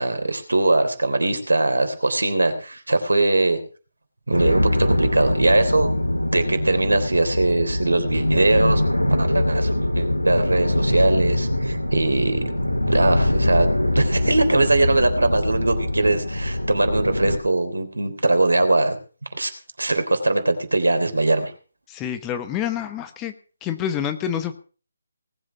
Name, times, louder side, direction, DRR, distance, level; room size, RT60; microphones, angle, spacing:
voice 1, 0.0-3.6 4.3-5.9 6.3-8.8 9.2-19.0 19.3-19.5 19.8-21.5, right 2 dB, 75° right, 9 dB, 3.5 m, -21 dB
sound 1, 4.3-17.4, left 1 dB, 90° left, 2.0 m, -23 dB
voice 2, 21.9-23.3 23.6-24.5, left 9 dB, 15° left, 9 dB, 1.2 m, -27 dB
19.0 x 8.0 x 6.8 m, 0.38 s
figure-of-eight pair, 150°, 0 cm